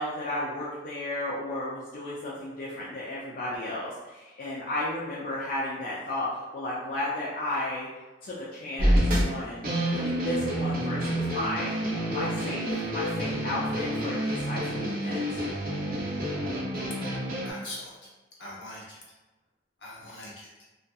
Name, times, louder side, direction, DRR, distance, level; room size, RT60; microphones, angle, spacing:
voice 1, 0.0-7.9 8.2-11.8 12.1-15.4, left 1 dB, 55° left, -7 dB, 0.4 m, -34 dB
sound 1, 8.8-17.5, equal, 55° right, 0.6 m, -28 dB
voice 2, 17.4-18.1 18.4-19.0 19.8-20.5, left 1 dB, 80° left, -5 dB, 0.8 m, -42 dB
2.6 x 2.1 x 2.3 m, 1.2 s
head